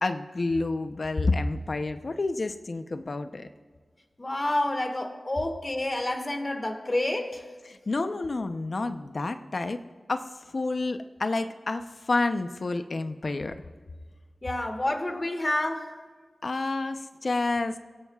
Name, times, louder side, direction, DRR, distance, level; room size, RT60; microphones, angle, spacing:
voice 1, 0.0-3.5 7.7-9.8 10.1-13.5 16.4-17.8, left 3 dB, 60° left, 8 dB, 0.7 m, -29 dB
voice 2, 4.2-7.4 14.4-16.0, left 1 dB, 30° left, 5 dB, 1.8 m, -29 dB
29.5 x 16.5 x 2.4 m, 1.5 s
wide cardioid pair, 70°, 0 cm